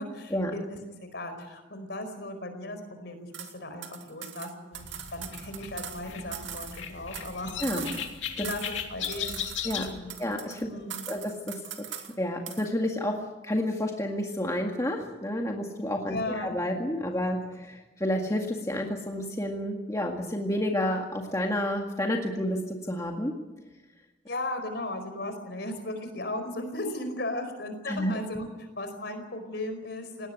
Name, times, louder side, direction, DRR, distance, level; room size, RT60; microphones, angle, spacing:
voice 1, 0.0-4.8 5.1-7.8 8.4-10.2 10.6-11.1 16.1-16.6 24.3-30.3, left 1 dB, 60° left, 7 dB, 4.9 m, -36 dB
sound 1, 3.3-3.5 3.8-6.0 6.3-8.2 8.4-8.8 9.0-10.6 10.9-12.1 12.5-12.7, right 10 dB, 80° right, 2.4 m, -41 dB
sound 2, 4.7-10.0, left 8 dB, 90° left, 2.6 m, -37 dB
voice 2, 10.2-10.7 11.1-11.6 12.2-13.1 13.4-23.3 27.9-28.1, left 1 dB, 15° left, 1 dB, 1.9 m, -30 dB
19.5 x 18.5 x 9.5 m, 1.1 s
head